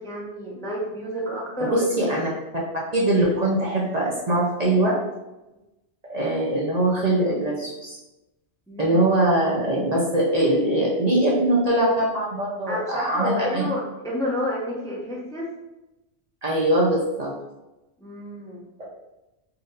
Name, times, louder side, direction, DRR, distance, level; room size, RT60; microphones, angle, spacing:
voice 1, 0.0-2.1 8.7-9.0 12.7-15.5 18.0-18.7, equal, 5° left, -4 dB, 0.7 m, -30 dB
voice 2, 1.7-2.3 2.9-5.0 6.1-8.0 8.8-13.6 16.4-17.3 18.8-18.9, right 1 dB, 40° right, -4 dB, 0.8 m, -22 dB
4.2 x 2.6 x 3.8 m, 0.98 s
omnidirectional pair, 1.2 m